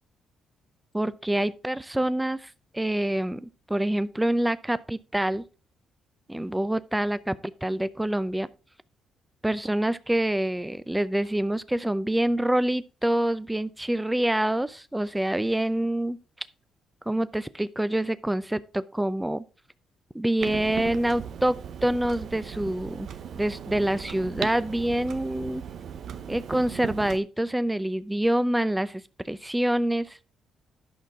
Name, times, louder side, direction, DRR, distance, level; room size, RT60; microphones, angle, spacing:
voice 1, 0.9-5.5 6.3-8.5 9.4-16.2 17.1-19.4 20.1-23.1 23.3-25.6 26.3-30.2, right 1 dB, 10° right, 0.5 m, -26 dB
Clock, 20.4-27.2, right 8 dB, 65° right, 0.8 m, -37 dB
11.0 x 5.8 x 3.5 m
cardioid pair, 90°, 0 cm